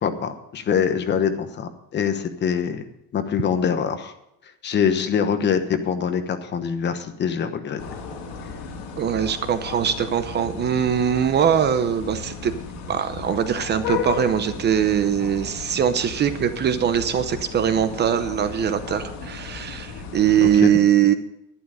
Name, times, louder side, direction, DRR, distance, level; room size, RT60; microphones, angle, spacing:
voice 1, 0.0-2.8 3.1-4.1 4.6-7.8 20.4-20.7, left 7 dB, 30° left, 9 dB, 1.1 m, -24 dB
sound 1, 7.8-20.6, left 5 dB, 80° left, 2.9 m, -34 dB
voice 2, 9.0-12.5 12.9-21.1, right 9 dB, 30° right, 10 dB, 0.7 m, -21 dB
11.5 x 11.0 x 5.0 m, 0.84 s
cardioid pair, 170°, 34 cm